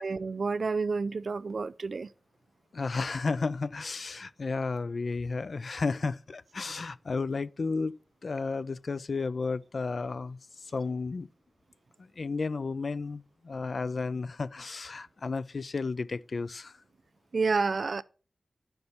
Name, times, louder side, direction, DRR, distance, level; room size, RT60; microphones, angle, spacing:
voice 1, 0.0-2.1 17.3-18.0, right 4 dB, 70° right, 0.4 m, -29 dB
voice 2, 2.7-10.4 10.7-11.3 12.2-16.7, left 4 dB, 65° left, 0.4 m, -33 dB
11.0 x 5.3 x 4.2 m
wide cardioid pair, 95°, 0 cm